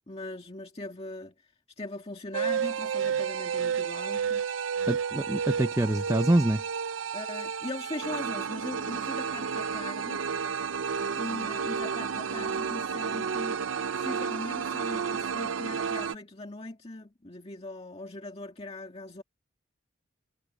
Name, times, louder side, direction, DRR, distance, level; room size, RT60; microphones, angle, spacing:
voice 1, 0.1-4.4 7.1-10.2 11.1-13.6 13.9-19.2, left 2 dB, 30° left, 2.1 m, -40 dB
sound 1, 2.3-16.1, right 6 dB, 80° right, 0.5 m, -31 dB
voice 2, 4.9-6.6, right 1 dB, 15° right, 0.6 m, -25 dB
head